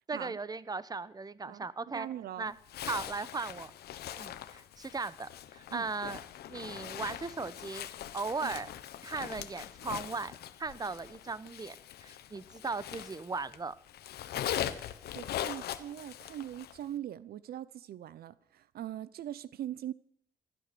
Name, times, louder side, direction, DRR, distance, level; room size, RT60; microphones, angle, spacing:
voice 1, 0.1-2.1 2.4-2.5 2.9-3.7 4.2-6.2 6.5-7.9 8.1-8.7 9.0-10.3 10.6-11.8 12.0-13.7, right 4 dB, 25° right, 0.9 m, -37 dB
voice 2, 1.9-2.5 5.7-5.9 8.4-8.5 15.1-19.9, right 11 dB, 75° right, 0.6 m, -41 dB
Zipper (clothing), 2.7-13.6 13.9-16.8, left 11 dB, 85° left, 0.9 m, -41 dB
16.0 x 11.0 x 6.8 m
cardioid pair, 80°, 16 cm